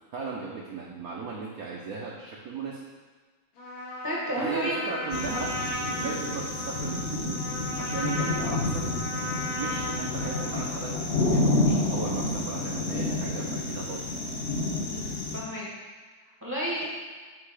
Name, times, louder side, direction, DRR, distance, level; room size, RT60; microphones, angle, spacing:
voice 1, 0.1-2.8 4.4-5.5 5.8-7.4 7.8-8.9 9.5-10.9 11.2-14.2, right 5 dB, 65° right, -3 dB, 0.9 m, -36 dB
Trumpet, 3.6-10.7, left 1 dB, 85° left, 2.1 m, -36 dB
voice 2, 4.0-4.8 5.9-6.1 14.9-15.7 16.4-16.8, equal, 15° right, -6 dB, 0.6 m, -32 dB
sound 1, 5.1-15.4, left 2 dB, 50° left, 0.8 m, -29 dB
7.5 x 2.9 x 4.8 m, 1.5 s
omnidirectional pair, 2.2 m